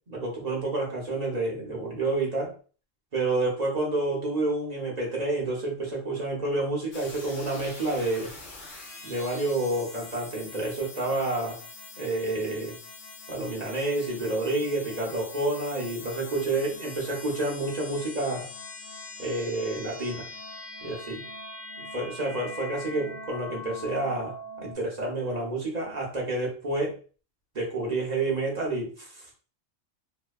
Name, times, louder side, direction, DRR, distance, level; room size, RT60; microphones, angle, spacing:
voice 1, 0.1-2.5 3.1-8.3 9.0-11.6 12.0-12.7 13.3-18.5 19.2-20.3 20.8-21.3 21.8-27.0 27.5-29.4, right 2 dB, 40° right, -2 dB, 0.8 m, -29 dB
sound 1, 6.9-24.8, left 2 dB, 90° left, 1.0 m, -43 dB
2.8 x 2.2 x 2.2 m, 0.39 s
omnidirectional pair, 1.1 m